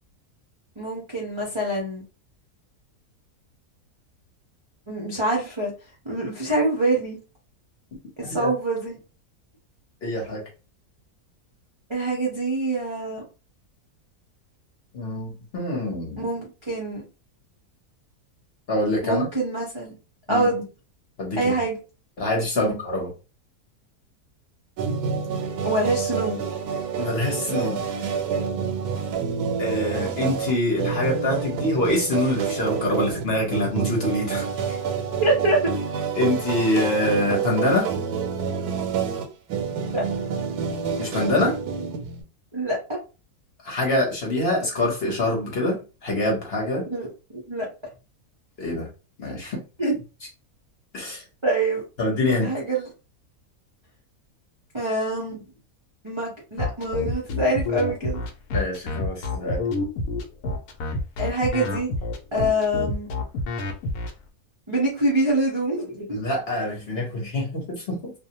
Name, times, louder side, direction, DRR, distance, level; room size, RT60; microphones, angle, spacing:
voice 1, 0.8-2.0 4.9-5.7 6.0-7.2 8.2-8.9 11.9-13.2 16.2-17.0 19.0-20.0 20.3-20.7 21.4-21.8 22.5-22.8 25.6-26.4 35.2-35.6 39.5-39.6 39.9-40.0 42.5-43.0 46.9-47.7 49.8-50.0 51.4-51.8 52.3-52.9 54.7-55.4 56.0-58.2 61.2-61.9 62.3-63.1 64.7-66.2, right 1 dB, 40° right, -4 dB, 0.4 m, -25 dB
voice 2, 10.0-10.4 14.9-16.2 18.7-19.3 20.3-20.5 21.2-21.6 22.2-23.1 27.0-27.8 29.6-34.8 36.1-37.9 41.0-41.6 43.6-46.8 48.6-48.9 49.2-49.6 50.9-51.2 52.0-52.5 58.5-59.6 66.1-68.1, left 1 dB, 50° left, -1 dB, 1.0 m, -25 dB
sound 1, 24.8-42.2, right 6 dB, 85° right, 1.1 m, -28 dB
sound 2, 56.6-64.1, left 3 dB, 80° left, 1.1 m, -28 dB
2.6 x 2.1 x 2.8 m, 0.32 s
omnidirectional pair, 1.6 m